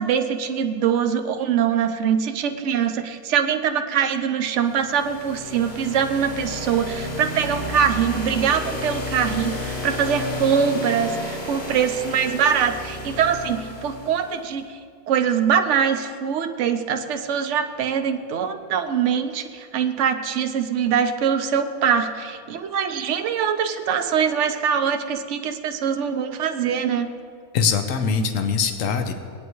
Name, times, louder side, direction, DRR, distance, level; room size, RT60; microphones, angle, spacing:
voice 1, 0.0-14.8 15.1-27.1, right 7 dB, 60° right, 7 dB, 1.0 m, -23 dB
sound 1, 4.6-14.4, left 1 dB, 45° left, 1.8 m, -32 dB
voice 2, 27.5-29.1, left 5 dB, 70° left, 7 dB, 1.2 m, -22 dB
19.5 x 9.3 x 3.1 m, 2.1 s
omnidirectional pair, 1.5 m